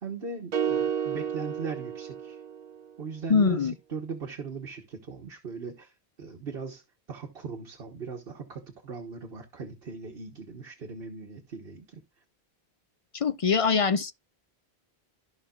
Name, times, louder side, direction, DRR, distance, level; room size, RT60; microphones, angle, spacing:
voice 1, 0.0-2.4 3.0-5.9 6.2-6.8 7.1-12.0, right 5 dB, 65° right, 1.4 m, -39 dB
sound 1, 0.5-2.8, right 8 dB, 50° right, 0.6 m, -31 dB
voice 2, 3.3-3.7 13.1-14.1, left 5 dB, 50° left, 0.4 m, -23 dB
14.5 x 5.2 x 2.3 m
omnidirectional pair, 1.1 m